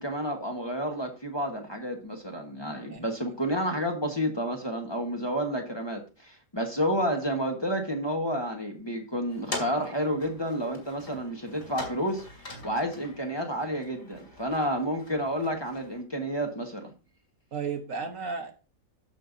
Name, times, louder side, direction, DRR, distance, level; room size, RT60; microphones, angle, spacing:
voice 1, 0.0-16.9, equal, 20° left, 1.3 m, -30 dB
sound 1, 9.3-16.0, left 2 dB, 40° left, 2.9 m, -43 dB
voice 2, 17.5-18.5, right 5 dB, 70° right, 1.6 m, -34 dB
14.0 x 5.6 x 2.7 m
omnidirectional pair, 1.4 m